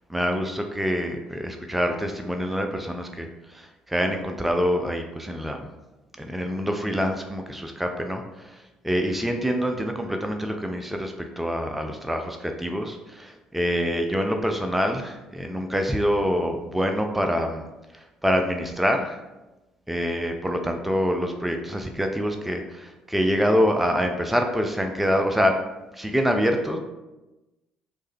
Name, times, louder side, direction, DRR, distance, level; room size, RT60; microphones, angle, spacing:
voice 1, 0.1-5.7 6.2-17.7 17.9-19.2 19.9-25.6 25.9-26.8, equal, 5° right, 4 dB, 0.3 m, -26 dB
3.2 x 2.1 x 3.4 m, 1.0 s
hypercardioid pair, 50°, 3 cm